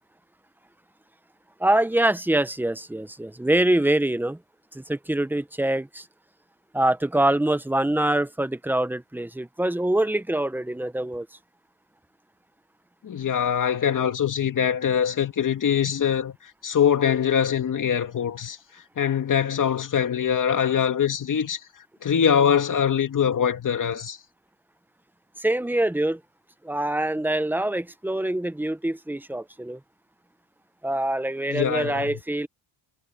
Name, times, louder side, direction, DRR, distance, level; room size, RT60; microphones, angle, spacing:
voice 1, 1.6-4.4 4.7-6.0 6.7-11.3 25.4-26.2 26.6-29.8 30.8-32.5, right 1 dB, 5° right, 0.6 m, -24 dB
voice 2, 13.0-16.4 16.6-18.6 19.0-21.6 22.0-24.2 31.5-32.2, left 8 dB, 40° left, 2.6 m, -23 dB
cardioid pair, 145°, 46 cm